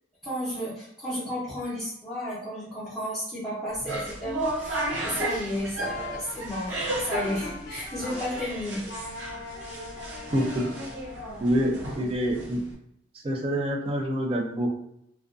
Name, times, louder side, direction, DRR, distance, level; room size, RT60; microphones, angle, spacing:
voice 1, 0.2-8.9, equal, 5° left, -12 dB, 0.7 m, -33 dB
sound 1, 3.7-12.7, right 1 dB, 70° right, 0.7 m, -34 dB
Wind instrument woodwind instrument, 5.8-8.5 8.9-11.3, left 3 dB, 55° left, 0.5 m, -42 dB
voice 2, 10.3-10.7 11.4-12.6 13.2-14.7, equal, 30° right, 1 dB, 0.4 m, -26 dB
2.4 x 2.2 x 2.4 m, 0.75 s
head